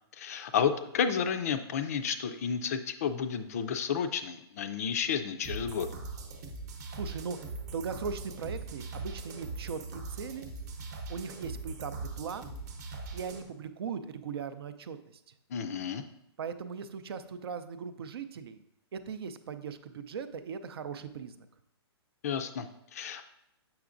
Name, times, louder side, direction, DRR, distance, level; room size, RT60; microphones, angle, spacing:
voice 1, 0.1-5.9 15.5-16.0 22.2-23.2, left 7 dB, 35° left, 10 dB, 0.4 m, -31 dB
sound 1, 5.4-13.4, right 3 dB, 40° right, 0.8 m, -41 dB
voice 2, 7.0-7.4 7.7-10.5 11.1-12.5 13.1-15.0 16.4-18.6 18.9-21.5, right 6 dB, 65° right, 10 dB, 0.5 m, -39 dB
7.1 x 5.8 x 2.5 m, 0.82 s
hypercardioid pair, 165°, 14 cm